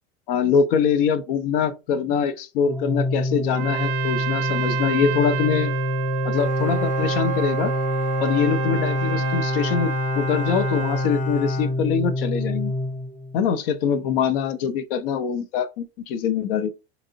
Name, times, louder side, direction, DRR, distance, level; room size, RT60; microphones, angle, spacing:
voice 1, 0.3-5.7 6.2-7.7 8.2-12.7 13.3-16.7, left 7 dB, 60° left, 0.6 m, -23 dB
Organ, 2.6-13.5, left 2 dB, 5° left, 0.4 m, -26 dB
Trumpet, 3.5-11.1, right 13 dB, 55° right, 0.6 m, -30 dB
Bowed string instrument, 6.3-12.5, left 7 dB, 20° left, 0.8 m, -35 dB
3.8 x 2.8 x 2.6 m
hypercardioid pair, 90°, 33 cm